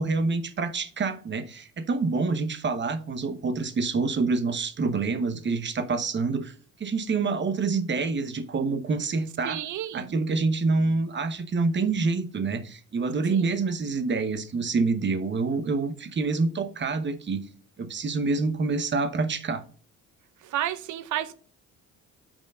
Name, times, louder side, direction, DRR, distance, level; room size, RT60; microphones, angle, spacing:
voice 1, 0.0-6.5 6.8-9.6 9.9-17.5 17.8-19.6, right 4 dB, 40° right, 1.0 m, -27 dB
voice 2, 9.4-10.1 13.3-13.5 20.4-21.3, right 12 dB, 75° right, 0.7 m, -31 dB
5.9 x 4.5 x 5.4 m
cardioid pair, 90°, 30 cm